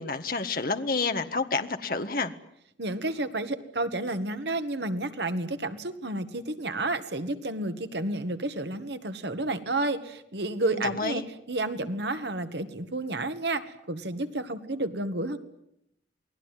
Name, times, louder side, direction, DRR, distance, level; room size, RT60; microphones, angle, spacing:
voice 1, 0.0-2.3 10.6-11.2, left 3 dB, 50° left, 7 dB, 1.5 m, -29 dB
voice 2, 2.8-15.4, right 2 dB, 70° right, 9 dB, 1.9 m, -31 dB
28.5 x 20.5 x 9.2 m, 0.75 s
head